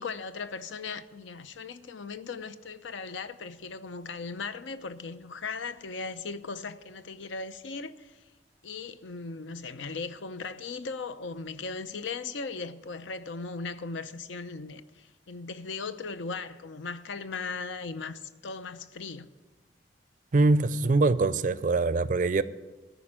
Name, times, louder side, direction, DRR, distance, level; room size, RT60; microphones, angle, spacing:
voice 1, 0.0-8.3 8.6-19.3, left 4 dB, 90° left, 0.6 m, -38 dB
voice 2, 20.3-22.4, right 3 dB, 45° right, 0.4 m, -23 dB
14.0 x 5.2 x 8.7 m
head